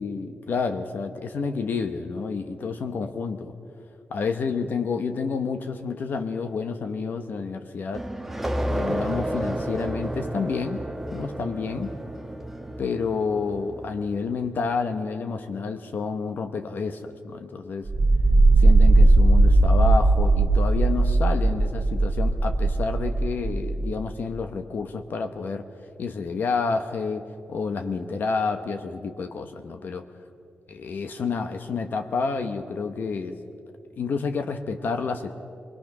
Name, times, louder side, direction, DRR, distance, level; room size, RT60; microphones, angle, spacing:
voice 1, 0.0-3.5 4.1-8.1 8.7-10.8 11.1-11.9 12.8-17.9 18.6-25.6 26.0-30.0 30.7-33.4 33.9-35.3, left 4 dB, 60° left, 7 dB, 0.9 m, -29 dB
sound 1, 7.9-14.3, right 1 dB, 5° right, 1.0 m, -31 dB
sound 2, 17.9-23.9, right 2 dB, 25° right, 2.0 m, -18 dB
24.5 x 20.5 x 6.0 m, 2.6 s
wide cardioid pair, 165°, 4 cm